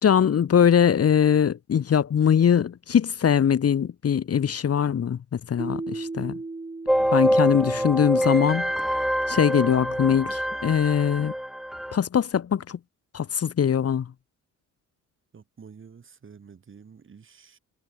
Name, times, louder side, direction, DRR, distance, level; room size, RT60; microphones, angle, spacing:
voice 1, 0.0-6.4 7.1-8.7 9.3-11.3 11.9-12.8 13.1-14.1, left 8 dB, 50° left, 2.3 m, -22 dB
Keyboard (musical), 5.6-8.4, right 3 dB, 20° right, 6.5 m, -36 dB
sound 1, 6.9-12.0, equal, ahead, 0.5 m, -25 dB
voice 2, 6.9-8.1 15.3-17.6, right 6 dB, 40° right, 6.3 m, -48 dB
cardioid pair, 115°, 32 cm